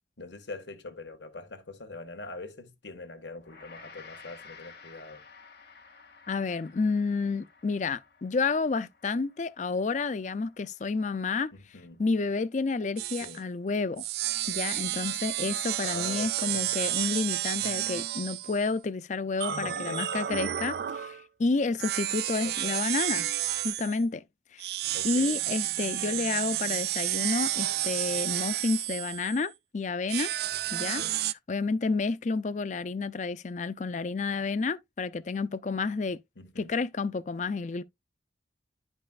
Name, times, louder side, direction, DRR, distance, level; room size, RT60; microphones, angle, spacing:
voice 1, 0.2-5.2 11.5-12.0 13.2-13.4 15.8-16.6 19.5-20.3 22.4-22.8 24.9-25.4 25.9-26.2 30.9-31.2 36.3-36.7, left 2 dB, 85° left, 1.6 m, -43 dB
Gong, 3.4-12.8, left 4 dB, 60° left, 1.7 m, -54 dB
voice 2, 6.3-11.5 12.0-14.0 14.5-23.3 23.6-24.2 24.5-24.6 25.0-30.3 30.7-31.0 31.5-36.2 36.6-37.8, left 4 dB, 40° left, 0.4 m, -30 dB
sound 1, 13.0-13.4 14.0-18.7 19.4-21.2 21.8-24.0 24.6-29.5 30.1-31.3, right 14 dB, 60° right, 0.3 m, -31 dB
11.0 x 5.4 x 2.4 m
head